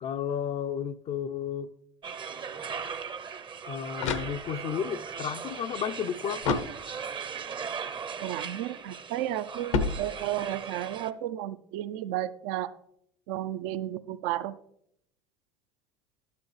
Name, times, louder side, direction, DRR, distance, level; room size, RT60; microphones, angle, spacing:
voice 1, 0.0-1.7 3.7-6.7, left 8 dB, 40° left, 0.4 m, -33 dB
sound 1, 2.0-11.1, right 6 dB, 30° right, 0.7 m, -38 dB
sound 2, 3.5-4.9 6.4-7.3 9.7-10.6, left 4 dB, 80° left, 0.9 m, -32 dB
voice 2, 8.2-12.7 13.3-14.6, right 13 dB, 65° right, 0.5 m, -33 dB
12.0 x 9.4 x 3.3 m
hypercardioid pair, 75°, 16 cm